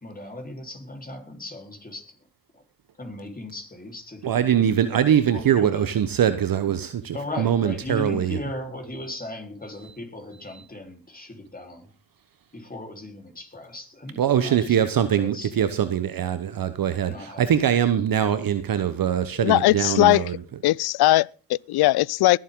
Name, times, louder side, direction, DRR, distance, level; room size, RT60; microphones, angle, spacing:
voice 1, 0.0-2.2 2.5-2.6 3.0-5.0 5.3-5.9 7.1-11.9 12.5-15.5 17.1-17.7, left 1 dB, 20° left, 4.0 m, -37 dB
voice 2, 4.2-8.4 14.2-20.4, right 9 dB, 45° right, 1.1 m, -22 dB
voice 3, 19.4-20.2 20.6-22.4, left 17 dB, 55° left, 0.5 m, -19 dB
21.5 x 7.5 x 3.8 m
supercardioid pair, 65°, 46 cm